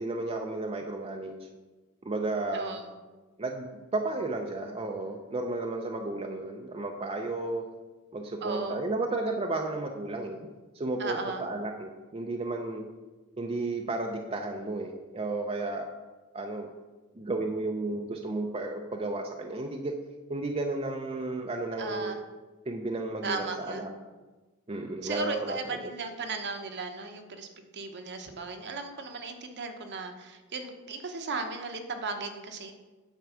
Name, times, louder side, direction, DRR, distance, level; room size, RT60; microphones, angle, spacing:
voice 1, 0.0-1.4 2.0-2.8 3.4-7.6 8.1-10.5 10.7-12.8 13.4-15.9 16.3-16.7 17.1-19.9 20.3-22.2 22.7-23.9 24.7-25.6 25.8-25.9, right 2 dB, 25° right, 2 dB, 0.6 m, -33 dB
voice 2, 2.5-3.0 8.4-8.8 11.0-11.4 21.8-22.2 23.2-23.9 25.0-27.5 27.7-32.7, right 4 dB, 50° right, 5 dB, 1.0 m, -36 dB
9.3 x 4.6 x 7.0 m, 1.2 s
head